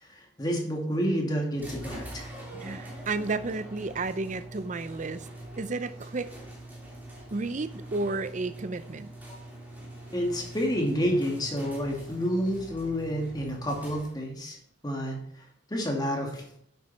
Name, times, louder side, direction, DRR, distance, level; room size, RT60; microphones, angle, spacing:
voice 1, 0.1-2.3 10.1-14.6 14.8-15.2 15.7-16.4, equal, 20° left, 2.3 m, -29 dB
sound 1, 1.6-14.4, right 1 dB, 10° right, 3.0 m, -43 dB
voice 2, 2.5-5.3 5.6-6.3 7.3-9.1, right 3 dB, 40° right, 0.5 m, -32 dB
11.5 x 8.2 x 4.3 m
head